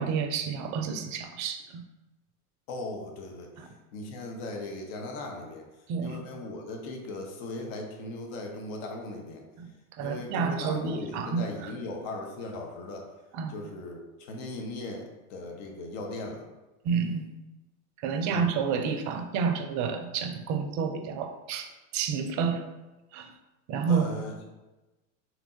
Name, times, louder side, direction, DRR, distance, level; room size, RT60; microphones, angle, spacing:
voice 1, 0.0-1.8 3.6-3.7 5.9-6.2 9.6-9.7 10.0-11.7 13.3-13.5 16.8-17.3 18.0-22.6 23.1-23.3 23.7-24.2, right 6 dB, 40° right, 7 dB, 0.6 m, -30 dB
voice 2, 2.7-5.7 6.0-9.4 10.0-13.1 13.5-16.4 18.2-18.5 23.9-24.3, left 2 dB, 55° left, 2 dB, 1.0 m, -38 dB
3.6 x 3.0 x 3.7 m, 1.1 s
hypercardioid pair, 100°, 44 cm